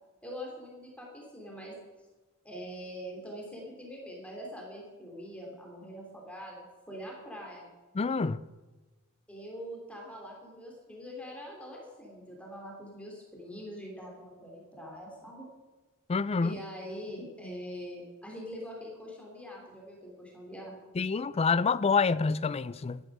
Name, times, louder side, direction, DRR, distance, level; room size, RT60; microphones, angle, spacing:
voice 1, 0.2-1.8 2.4-7.7 9.3-15.5 16.4-20.7, equal, 5° left, 3.1 m, -43 dB
voice 2, 7.9-8.4 16.1-16.5 21.0-23.0, left 5 dB, 25° left, 0.4 m, -27 dB
13.0 x 11.0 x 6.3 m
head